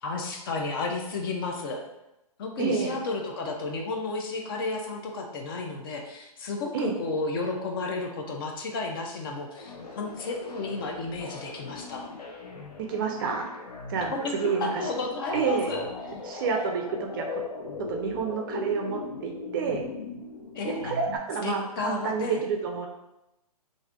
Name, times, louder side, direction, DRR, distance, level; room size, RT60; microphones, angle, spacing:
voice 1, 0.0-1.8 2.4-12.1 14.1-15.8 20.5-20.9 21.4-22.4, left 3 dB, 35° left, 2 dB, 0.4 m, -32 dB
voice 2, 2.6-3.0 6.7-7.0 12.8-13.6 13.9-14.8 15.3-15.7 16.2-17.4 17.9-19.9 20.7-22.9, right 5 dB, 35° right, 2 dB, 0.4 m, -29 dB
sound 1, 9.6-21.2, left 3 dB, 85° left, 0.6 m, -39 dB
3.1 x 2.5 x 2.4 m, 0.89 s
hypercardioid pair, 140°, 20 cm